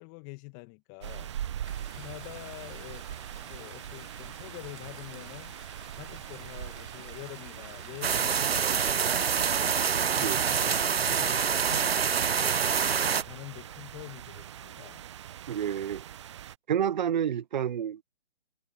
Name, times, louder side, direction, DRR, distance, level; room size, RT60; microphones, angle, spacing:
voice 1, 0.0-1.6 1.9-3.2 3.4-5.5 5.9-12.6 13.0-15.0, left 28 dB, 20° left, 1.8 m, -47 dB
sound 1, 1.0-16.6, right 10 dB, 25° right, 0.7 m, -42 dB
sound 2, 1.6-9.1, right 3 dB, 85° right, 4.0 m, -51 dB
sound 3, 8.0-13.2, right 7 dB, 65° right, 0.9 m, -26 dB
voice 2, 15.5-16.0 16.7-18.0, right 9 dB, 45° right, 1.0 m, -29 dB
figure-of-eight pair, 145°, 33 cm